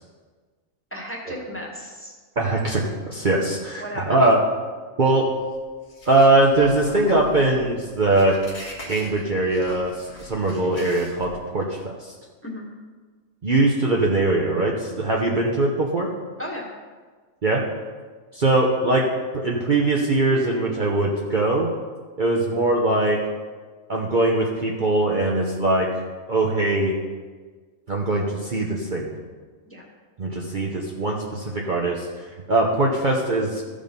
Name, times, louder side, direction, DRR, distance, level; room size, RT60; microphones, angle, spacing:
voice 1, 0.9-2.1 3.8-4.3 12.4-12.7 16.4-16.7 29.7-29.9, equal, 10° left, -3 dB, 1.7 m, -34 dB
voice 2, 2.4-4.4 5.0-5.3 6.1-8.4 8.9-12.1 13.4-16.1 17.4-17.6 18.3-19.0 19.3-21.7 22.2-23.2 23.9-26.0 26.3-27.0 27.9-29.1 30.2-33.6, right 2 dB, 40° right, -2 dB, 1.0 m, -21 dB
sound 1, 5.1-11.6, equal, 55° left, 1.8 m, -42 dB
14.5 x 5.1 x 5.3 m, 1.4 s
omnidirectional pair, 1.4 m